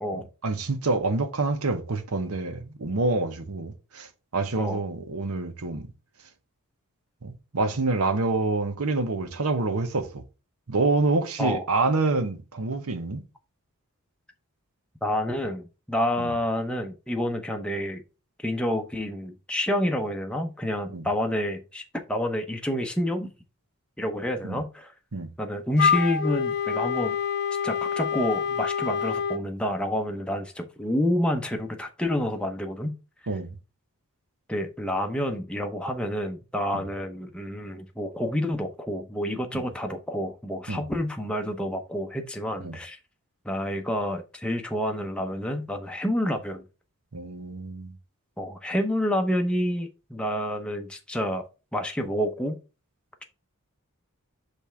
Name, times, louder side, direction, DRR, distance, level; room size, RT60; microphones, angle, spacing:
voice 1, 0.1-4.1 4.3-5.9 7.2-10.2 10.7-13.2 16.2-16.3 20.9-21.1 24.4-24.6 25.1-25.3 33.3-33.5 36.7-36.8 39.5-39.7 40.7-40.8 42.6-42.8 47.1-47.9, right 3 dB, 75° right, 1.0 m, -27 dB
voice 2, 15.0-18.0 18.4-21.8 22.1-23.3 24.0-24.9 25.4-27.2 27.6-32.9 34.5-43.0 43.4-46.6 48.4-51.4 51.7-52.6, equal, 5° left, 0.7 m, -28 dB
Wind instrument woodwind instrument, 25.8-29.4, left 7 dB, 50° left, 0.8 m, -26 dB
5.3 x 3.3 x 5.6 m
head